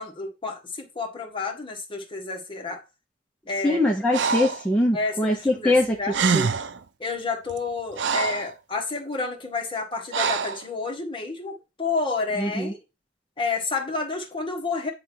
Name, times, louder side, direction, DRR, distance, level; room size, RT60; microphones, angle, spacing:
voice 1, 0.0-2.8 3.5-3.8 4.9-6.2 7.0-12.8 13.4-14.9, left 4 dB, 30° left, 1.6 m, -30 dB
voice 2, 3.6-6.5 12.4-12.7, left 1 dB, 5° left, 1.0 m, -23 dB
Breathing, 4.1-4.6 5.8-5.9 6.1-6.8 7.5-8.5 10.1-10.6, right 5 dB, 70° right, 0.6 m, -25 dB
9.0 x 3.6 x 4.5 m
head